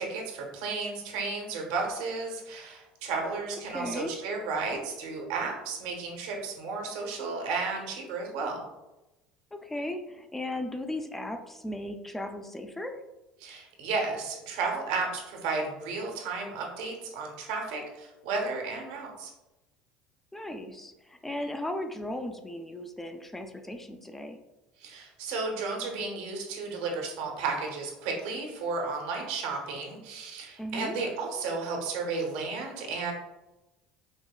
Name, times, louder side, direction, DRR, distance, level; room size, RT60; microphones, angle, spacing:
voice 1, 0.0-8.6 13.4-19.3 24.8-33.1, right 4 dB, 85° right, 1 dB, 0.9 m, -33 dB
voice 2, 3.7-4.2 9.5-13.0 20.3-24.4 30.6-31.0, left 1 dB, 10° left, 6 dB, 0.4 m, -36 dB
5.3 x 2.1 x 2.3 m, 1.0 s
supercardioid pair, 95°, 3 cm